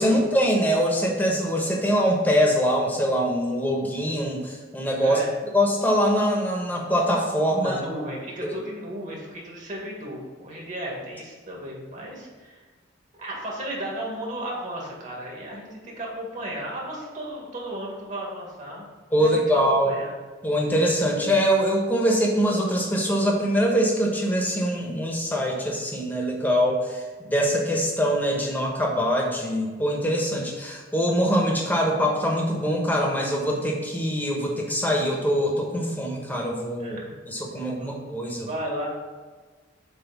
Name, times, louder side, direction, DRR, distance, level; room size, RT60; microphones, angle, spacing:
voice 1, 0.0-5.2 5.5-7.8 8.4-8.5 19.1-19.9 20.4-37.0 37.3-38.5, equal, 10° left, -1 dB, 1.2 m, -23 dB
voice 2, 5.0-5.3 7.6-12.6 13.2-18.9 19.2-20.1 36.8-37.2 37.5-38.0 38.4-38.9, right 1 dB, 40° right, -3 dB, 2.0 m, -35 dB
8.0 x 3.1 x 6.1 m, 1.4 s
head